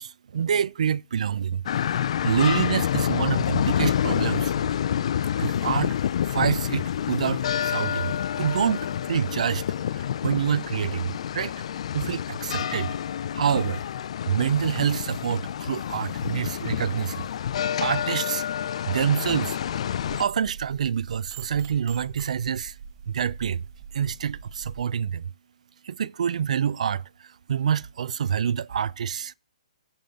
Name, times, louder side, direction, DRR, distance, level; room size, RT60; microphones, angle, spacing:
voice 1, 0.0-1.6 2.2-4.7 5.4-8.1 8.4-9.6 9.9-11.5 11.9-12.9 13.3-13.8 14.3-17.3 17.8-19.6 20.2-22.8 23.1-23.6 23.9-25.2 25.8-29.3, right 8 dB, 70° right, 0.4 m, -27 dB
sound 1, 1.7-20.2, left 9 dB, 55° left, 0.4 m, -28 dB
sound 2, 20.0-24.8, right 6 dB, 35° right, 1.0 m, -43 dB
15.5 x 5.4 x 3.7 m
hypercardioid pair, 155°, 4 cm